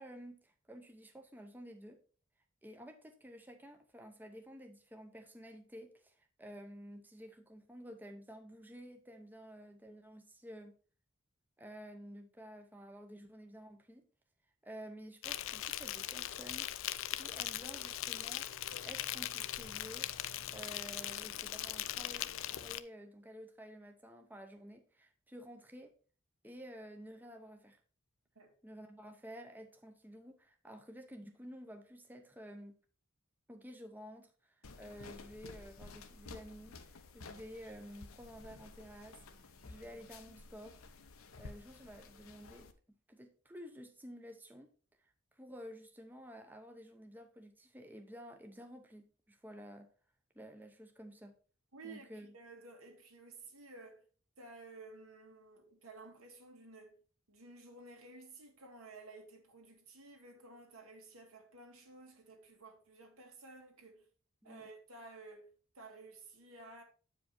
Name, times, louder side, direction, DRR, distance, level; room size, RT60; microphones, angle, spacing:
voice 1, 0.0-2.0 2.6-10.7 11.6-14.1 14.6-20.1 20.5-25.9 26.4-27.8 28.6-32.8 33.5-39.2 39.7-40.8 41.4-42.7 43.1-44.7 45.0-49.9 50.3-51.3 51.8-52.3 64.4-64.7, equal, 10° right, 0.7 m, -52 dB
Insect, 15.2-22.8, left 13 dB, 65° left, 0.4 m, -40 dB
sound 1, 34.6-42.7, left 3 dB, 80° left, 0.9 m, -53 dB
voice 2, 51.7-54.0 54.4-57.0 57.3-64.0 64.4-65.5 65.8-66.8, right 3 dB, 80° right, 1.9 m, -54 dB
8.4 x 5.1 x 4.2 m
head